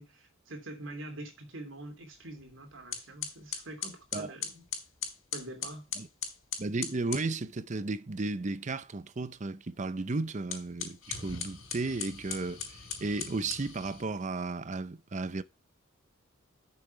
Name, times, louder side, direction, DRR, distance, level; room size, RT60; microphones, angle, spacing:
voice 1, 0.0-4.6 5.3-5.9, right 1 dB, 70° right, 2.9 m, -45 dB
sound 1, 2.4-2.5 2.9-7.3 10.4-14.1, left 7 dB, 90° left, 4.7 m, -39 dB
voice 2, 6.6-15.4, right 3 dB, 35° right, 0.6 m, -34 dB
8.7 x 7.0 x 4.6 m
head